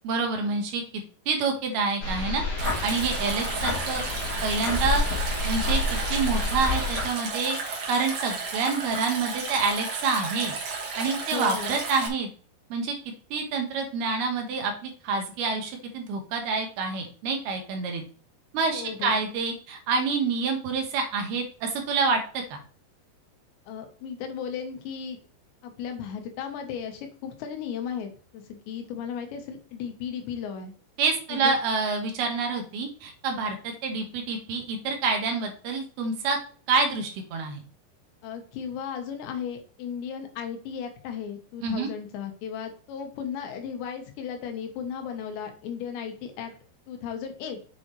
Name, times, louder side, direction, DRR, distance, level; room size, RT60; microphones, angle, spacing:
voice 1, 0.0-0.8 1.3-4.0 4.4-5.0 5.4-5.8 6.1-10.5 11.0-12.3 12.7-13.0 13.3-18.0 18.5-22.6 31.0-36.4 36.7-37.6 41.6-41.9, right 4 dB, 70° right, 3 dB, 2.9 m, -27 dB
sound 1, 2.0-7.0, left 2 dB, 40° left, 1.4 m, -29 dB
Stream, 2.6-12.1, right 4 dB, 55° right, 2.0 m, -33 dB
voice 2, 11.3-11.8 18.7-19.2 23.7-25.2 25.6-30.7 31.3-31.6 38.2-46.5 46.9-47.6, left 7 dB, 80° left, 5 dB, 3.4 m, -35 dB
7.8 x 7.0 x 3.2 m, 0.41 s
omnidirectional pair, 5.0 m